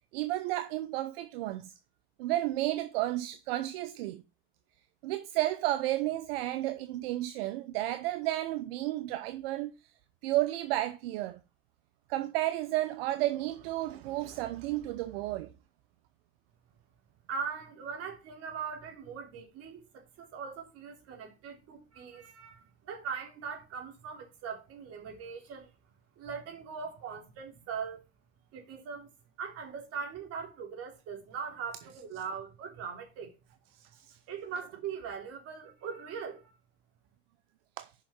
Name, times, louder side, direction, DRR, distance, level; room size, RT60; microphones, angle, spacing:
voice 1, 0.1-1.7 2.2-4.2 5.0-9.7 10.2-11.4 12.1-15.5 33.8-34.2 37.8-37.9, right 15 dB, 75° right, 0.8 m, -32 dB
voice 2, 17.3-25.7 26.2-28.0 28.5-29.1 29.4-33.3 34.3-36.5, right 6 dB, 55° right, 3.5 m, -40 dB
7.0 x 5.6 x 6.3 m
supercardioid pair, 105°, 30 cm